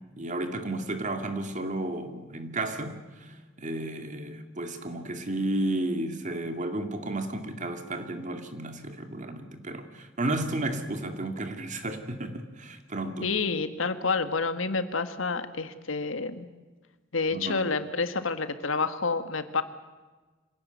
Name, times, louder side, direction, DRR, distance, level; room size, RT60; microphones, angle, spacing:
voice 1, 0.0-13.3 17.3-17.6, right 2 dB, 40° right, 7 dB, 2.5 m, -33 dB
voice 2, 13.2-16.5 17.1-19.6, left 4 dB, 85° left, 10 dB, 1.8 m, -29 dB
26.0 x 17.0 x 9.4 m, 1.3 s
head